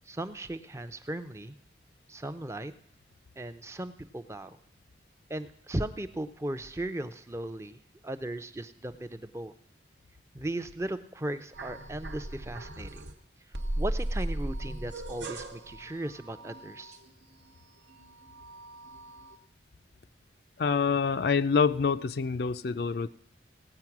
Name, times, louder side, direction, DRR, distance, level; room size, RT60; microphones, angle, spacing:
voice 1, 0.1-1.5 2.1-2.7 3.4-4.6 5.3-9.5 10.3-13.1 13.8-17.0, right 1 dB, 15° right, 10 dB, 0.5 m, -37 dB
sound 1, 11.5-13.2 13.5-17.5 17.9-19.4, right 1 dB, 75° right, 1.2 m, -37 dB
voice 2, 20.6-23.1, left 5 dB, 60° left, 12 dB, 0.4 m, -26 dB
17.5 x 8.4 x 5.9 m, 0.74 s
head